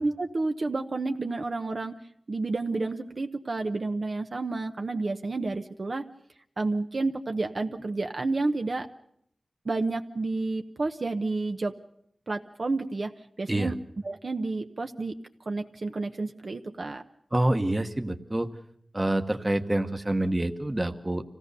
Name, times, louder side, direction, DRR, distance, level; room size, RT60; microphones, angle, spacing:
voice 1, 0.0-1.9 2.3-6.0 6.6-8.9 9.6-11.8 12.3-13.1 13.4-13.7 14.0-15.2 15.5-17.0, right 3 dB, 55° right, 5 dB, 0.9 m, -30 dB
voice 2, 17.3-18.5 18.9-21.2, right 1 dB, 20° right, 7 dB, 1.2 m, -27 dB
26.0 x 17.0 x 6.8 m, 0.69 s
wide cardioid pair, 95°, 0 cm